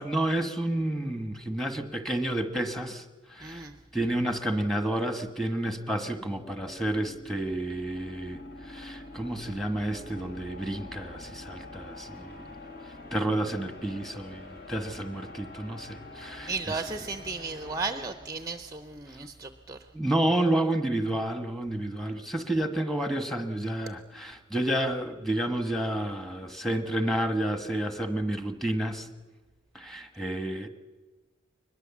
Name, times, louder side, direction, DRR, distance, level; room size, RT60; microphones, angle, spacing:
voice 1, 0.0-3.7 3.9-12.5 13.1-16.8 19.9-29.1 29.7-30.7, right 1 dB, ahead, 7 dB, 1.4 m, -30 dB
voice 2, 3.4-3.7 16.5-19.8, right 4 dB, 15° right, 9 dB, 0.6 m, -35 dB
sound 1, 5.9-19.1, left 2 dB, 50° left, 2.6 m, -46 dB
23.0 x 21.0 x 7.2 m, 1.3 s
head